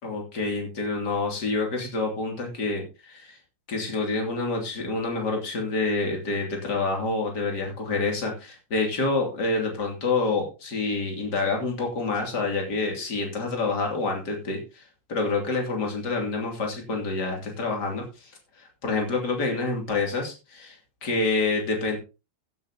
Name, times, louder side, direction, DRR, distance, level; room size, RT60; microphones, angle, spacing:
voice 1, 0.0-3.4 3.7-14.8 15.1-18.3 18.6-22.0, left 3 dB, 50° left, 2 dB, 3.3 m, -27 dB
16.0 x 8.7 x 2.8 m, 0.29 s
omnidirectional pair, 2.3 m